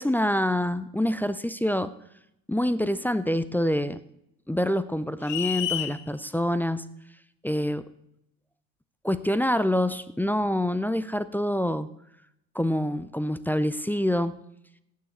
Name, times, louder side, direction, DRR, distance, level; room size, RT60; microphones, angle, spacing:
voice 1, 0.0-1.9 2.5-4.0 4.5-6.8 7.4-7.8 9.0-11.9 12.6-14.4, left 1 dB, 5° left, 12 dB, 0.4 m, -26 dB
sound 1, 5.2-6.0, left 12 dB, 80° left, 0.9 m, -29 dB
17.0 x 6.6 x 4.1 m, 0.79 s
hypercardioid pair, 70°, 48 cm